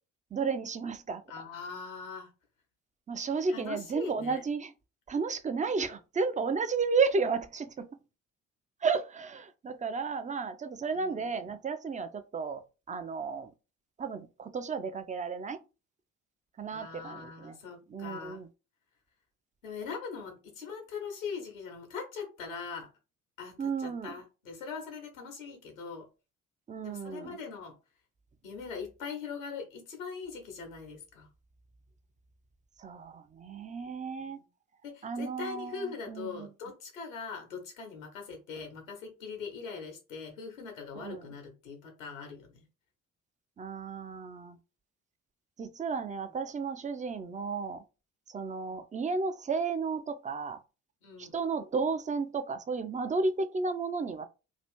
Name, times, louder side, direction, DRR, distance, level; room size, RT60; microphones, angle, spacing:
voice 1, 0.3-1.2 3.1-4.7 5.1-7.9 8.8-12.6 12.9-13.5 14.0-15.6 16.6-17.6 17.9-18.5 23.6-24.1 26.7-27.4 32.8-34.4 35.0-36.5 40.9-41.3 43.6-44.6 45.6-47.8 48.3-50.6 51.2-54.3, right 4 dB, 20° right, 0.4 m, -33 dB
voice 2, 1.3-2.3 3.5-4.4 10.9-11.6 16.7-18.4 19.6-22.9 23.4-26.1 26.8-27.7 28.4-31.3 34.2-34.5 34.8-42.6 51.0-51.4, left 5 dB, 85° left, 1.0 m, -41 dB
2.8 x 2.5 x 3.4 m
figure-of-eight pair, 45°, 39 cm